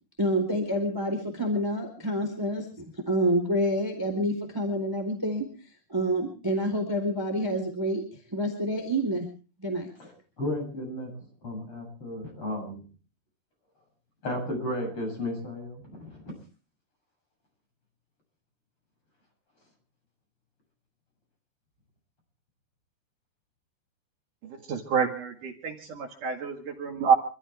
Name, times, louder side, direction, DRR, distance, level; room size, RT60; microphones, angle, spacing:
voice 1, 0.2-2.7 2.9-5.4 5.9-8.0 8.3-9.3 9.6-9.9, equal, 5° right, 4 dB, 3.6 m, -27 dB
voice 2, 10.4-11.1 11.4-12.8 14.2-16.3, left 1 dB, 35° left, 1 dB, 8.1 m, -33 dB
voice 3, 24.7-27.1, right 6 dB, 60° right, 2 dB, 3.4 m, -27 dB
27.5 x 14.0 x 3.5 m, 0.36 s
omnidirectional pair, 4.3 m